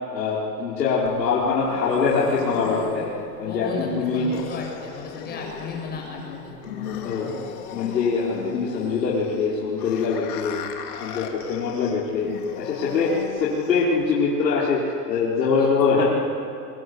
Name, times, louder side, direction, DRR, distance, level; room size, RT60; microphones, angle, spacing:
voice 1, 0.1-3.1 3.4-4.3 7.0-7.3 7.7-10.6 11.0-12.3 12.6-14.8 15.1-16.2, left 5 dB, 90° left, -6 dB, 4.9 m, -23 dB
sound 1, 1.1-14.1, left 7 dB, 65° left, 3.3 m, -37 dB
voice 2, 3.4-7.6 15.6-15.7, left 4 dB, 20° left, 0 dB, 6.8 m, -35 dB
24.5 x 24.0 x 8.0 m, 2.5 s
supercardioid pair, 150°, 49 cm